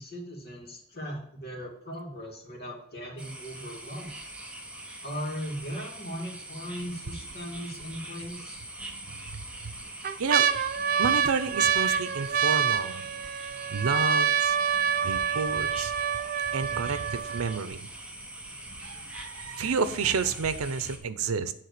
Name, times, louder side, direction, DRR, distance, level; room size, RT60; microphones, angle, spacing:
voice 1, 0.0-4.1 5.0-8.6, equal, 50° left, -1 dB, 2.4 m, -38 dB
sound 1, 3.2-21.0, right 1 dB, 5° right, 1.0 m, -43 dB
sound 2, 6.8-7.3 7.8-7.9 8.8-9.3 9.8-17.8 18.5-18.6 18.7-19.2 19.7-19.8, right 7 dB, 45° right, 0.4 m, -27 dB
voice 2, 11.0-13.0 13.7-14.6 15.0-15.9 16.5-17.9 18.8-21.5, right 5 dB, 90° right, 12 dB, 0.6 m, -30 dB
9.5 x 3.7 x 6.7 m, 0.66 s
head